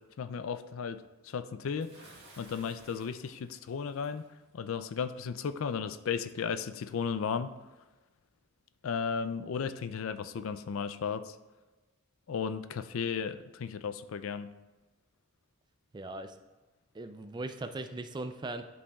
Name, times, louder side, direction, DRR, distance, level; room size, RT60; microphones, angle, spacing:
voice 1, 0.2-1.9 2.4-4.2 4.5-7.5 8.8-11.3 12.3-14.5, left 6 dB, 70° left, 12 dB, 0.4 m, -35 dB
Bathtub (filling or washing) / Splash splatter, 1.8-4.3, right 2 dB, 50° right, 1.6 m, -56 dB
voice 2, 15.9-16.3 16.9-18.6, right 2 dB, 20° right, 8 dB, 0.4 m, -39 dB
11.5 x 5.4 x 2.3 m, 1.2 s
head